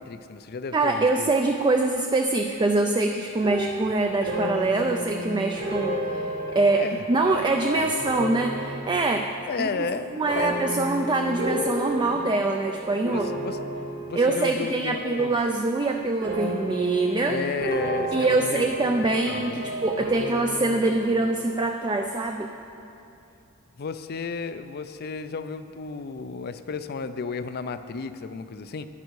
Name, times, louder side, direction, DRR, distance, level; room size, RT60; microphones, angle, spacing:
voice 1, 0.0-1.3 6.7-7.0 7.7-7.9 9.5-10.5 13.0-13.6 14.1-15.4 17.3-18.6 19.0-19.8 23.8-28.9, left 4 dB, 45° left, 11 dB, 0.4 m, -33 dB
voice 2, 0.7-9.2 9.6-13.3 14.1-17.4 18.1-22.5, right 2 dB, 20° right, 4 dB, 0.3 m, -24 dB
sound 1, 3.4-14.9 15.2-15.8 16.2-21.6, equal, 50° right, 1.5 m, -32 dB
11.5 x 9.4 x 4.7 m, 2.8 s
head